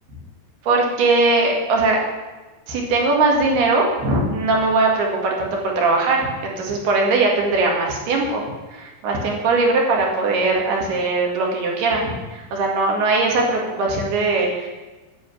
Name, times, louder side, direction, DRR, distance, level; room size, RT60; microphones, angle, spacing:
voice 1, 0.6-2.0 2.7-8.4 8.7-14.7, right 3 dB, 75° right, 0 dB, 4.1 m, -20 dB
11.0 x 7.1 x 9.2 m, 1.2 s
omnidirectional pair, 4.7 m